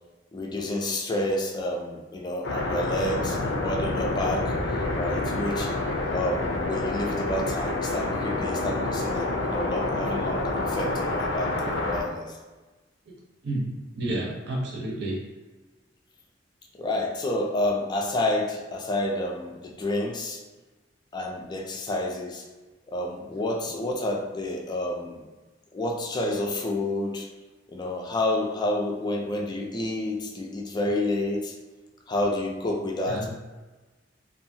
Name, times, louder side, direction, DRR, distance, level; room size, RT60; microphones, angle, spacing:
voice 1, 0.3-4.5 5.0-5.7 6.1-12.3 16.8-20.4 21.1-22.4 22.9-25.2 25.7-27.3 27.7-31.5 32.1-33.3, left 1 dB, 25° left, 0 dB, 0.3 m, -29 dB
sound 1, 2.4-12.0, left 2 dB, 80° left, 0.5 m, -28 dB
voice 2, 13.4-15.2 33.1-33.3, right 1 dB, 60° right, -2 dB, 0.7 m, -30 dB
2.6 x 2.4 x 2.6 m, 1.2 s
head